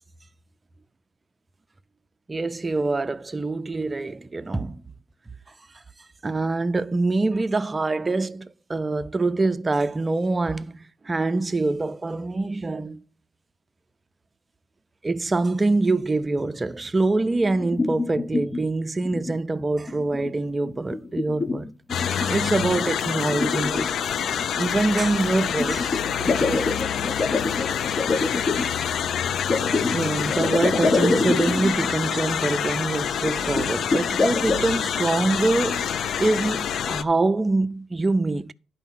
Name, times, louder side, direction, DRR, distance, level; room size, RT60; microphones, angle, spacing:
voice 1, 2.3-4.8 6.2-13.0 15.0-21.7 22.0-23.9 24.6-26.7 29.9-35.9 36.2-38.5, right 2 dB, 25° right, 0.5 m, -25 dB
sound 1, 17.4-18.6 19.0-19.4 19.9-20.3 20.7-22.3 22.7-22.8 23.2-24.4 25.6-28.7 29.5-31.9 32.2-32.3 32.6-32.7 33.3-34.7, left 3 dB, 30° left, 0.9 m, -26 dB
sound 2, 21.9-37.0, left 8 dB, 65° left, 0.5 m, -27 dB
11.0 x 4.6 x 5.8 m
cardioid pair, 90°, 0 cm